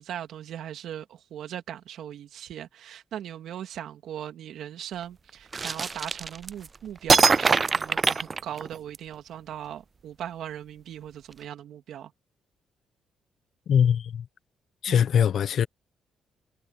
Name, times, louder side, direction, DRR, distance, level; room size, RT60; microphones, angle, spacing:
voice 1, 0.0-12.1 14.9-15.1, right 10 dB, 75° right, 2.8 m, -39 dB
sound 1, 5.5-6.7 7.1-9.0, right 4 dB, 40° right, 0.4 m, -22 dB
voice 2, 13.7-14.3 14.8-15.7, left 8 dB, 70° left, 0.9 m, -22 dB
supercardioid pair, 65°, 0 cm